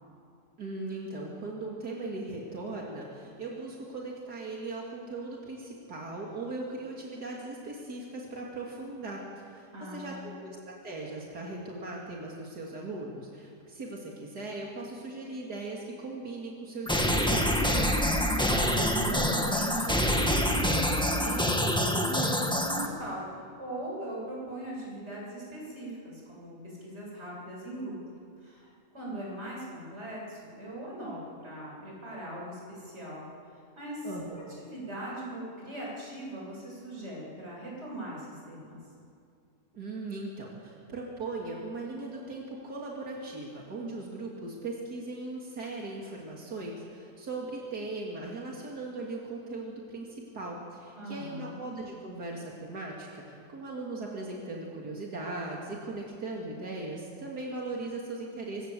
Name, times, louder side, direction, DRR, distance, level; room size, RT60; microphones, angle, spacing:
voice 1, 0.6-17.7 34.0-34.5 39.7-58.7, right 2 dB, 85° right, -2 dB, 3.2 m, -39 dB
voice 2, 9.7-10.4 18.3-23.3 23.6-28.0 28.4-33.3 33.5-34.1 34.6-38.8 50.9-51.6, right 1 dB, 45° right, -4 dB, 8.1 m, -40 dB
sound 1, 16.9-22.9, equal, 5° left, 1.8 m, -26 dB
25.0 x 22.5 x 7.8 m, 2.4 s
omnidirectional pair, 1.7 m